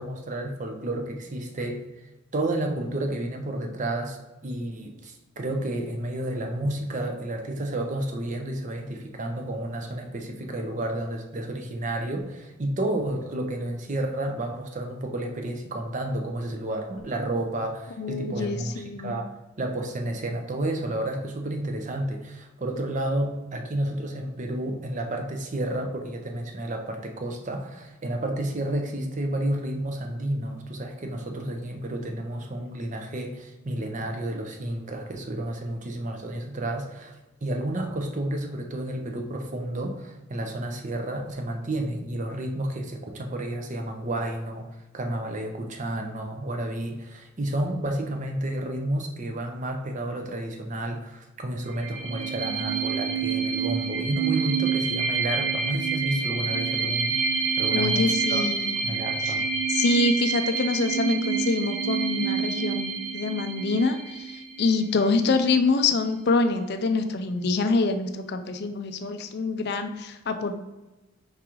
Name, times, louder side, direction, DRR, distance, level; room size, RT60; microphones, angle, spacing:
voice 1, 0.0-1.8 2.3-4.2 4.4-19.3 19.6-37.2 37.4-44.7 44.9-58.5 58.8-59.4, right 1 dB, 35° right, 4 dB, 0.6 m, -31 dB
voice 2, 18.0-19.2 57.7-58.8 59.3-59.4 59.7-70.5, left 3 dB, 50° left, 8 dB, 0.4 m, -25 dB
sound 1, 51.7-65.1, right 5 dB, 85° right, 0.8 m, -28 dB
4.8 x 3.7 x 3.0 m, 1.1 s
head